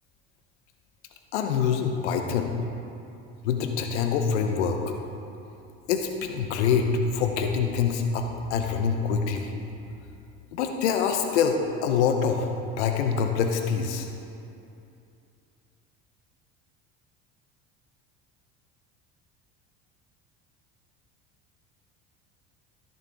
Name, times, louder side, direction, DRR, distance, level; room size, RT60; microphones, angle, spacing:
voice 1, 1.3-2.5 3.4-5.0 5.9-9.5 10.5-14.1, left 6 dB, 80° left, 5 dB, 0.9 m, -25 dB
14.5 x 6.7 x 3.5 m, 2.6 s
hypercardioid pair, 75°, 35 cm